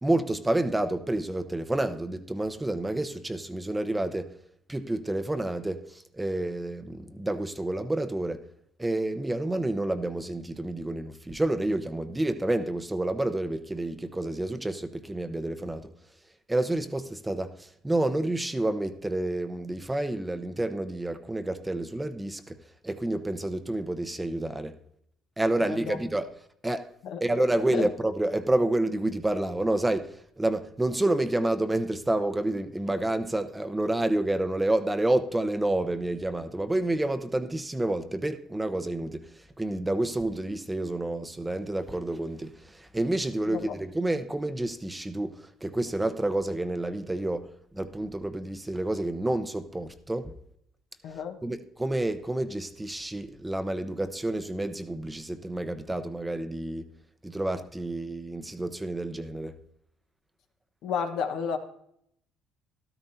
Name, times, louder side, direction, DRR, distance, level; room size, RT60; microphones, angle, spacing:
voice 1, 0.0-4.3 4.7-8.4 8.8-15.9 16.5-22.6 22.8-24.7 25.4-26.3 26.6-26.9 27.2-50.3 51.4-56.8 57.2-59.5, right 1 dB, 10° right, 0.8 m, -29 dB
voice 2, 25.6-26.0 27.0-27.2 27.7-27.9 43.5-43.7 51.0-51.4 60.8-61.6, left 7 dB, 70° left, 1.2 m, -31 dB
13.0 x 12.5 x 2.8 m
supercardioid pair, 75°, 0 cm